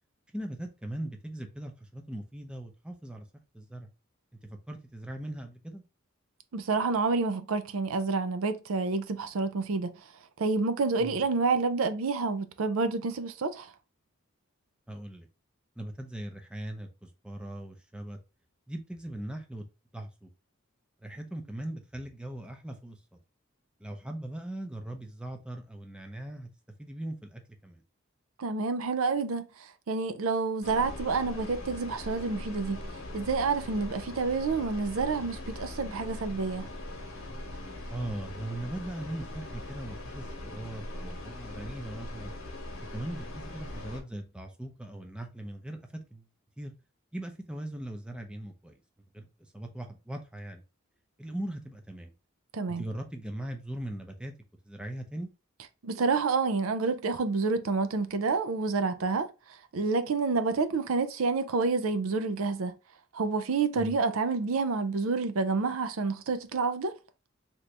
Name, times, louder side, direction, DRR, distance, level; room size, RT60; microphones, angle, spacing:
voice 1, 0.3-3.2 3.5-3.9 4.7-5.8 11.0-11.2 14.9-15.3 15.8-18.2 18.7-19.6 19.9-20.3 21.0-23.0 23.8-26.5 26.8-27.8 37.9-42.3 42.9-45.8 46.1-46.2 46.6-46.7 47.1-48.7 49.1-49.3 49.5-50.6 51.2-52.1 52.8-54.3 54.7-55.3 63.8-63.9, right 1 dB, 5° right, 0.5 m, -39 dB
voice 2, 6.5-9.9 10.4-13.7 28.4-32.9 33.1-36.7 52.5-52.9 55.8-59.3 59.7-62.7 63.1-66.9, right 4 dB, 80° right, 0.5 m, -28 dB
sound 1, 30.6-44.0, left 1 dB, 75° left, 0.9 m, -41 dB
2.9 x 2.6 x 3.2 m
head